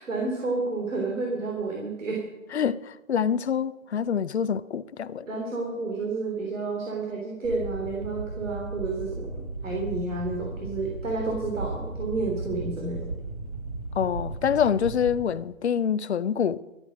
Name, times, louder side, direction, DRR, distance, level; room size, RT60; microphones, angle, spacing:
voice 1, 0.0-2.2 5.3-13.1, right 3 dB, 65° right, 3.4 m, -30 dB
voice 2, 2.5-5.3 14.0-16.6, left 8 dB, 55° left, 0.6 m, -26 dB
sound 1, 7.4-15.2, right 2 dB, 30° right, 1.7 m, -35 dB
13.5 x 10.5 x 6.2 m
hypercardioid pair, 170°, 40 cm